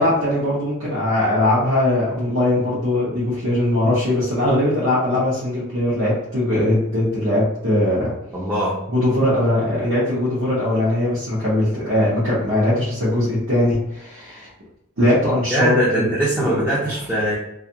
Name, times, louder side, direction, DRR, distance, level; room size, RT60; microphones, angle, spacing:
voice 1, 0.0-8.1 8.9-14.5 15.0-16.1 16.4-16.6, left 1 dB, 65° right, -9 dB, 0.8 m, -20 dB
voice 2, 8.3-8.8 15.5-17.4, right 1 dB, 5° right, -7 dB, 0.4 m, -21 dB
2.5 x 2.4 x 2.7 m, 0.86 s
head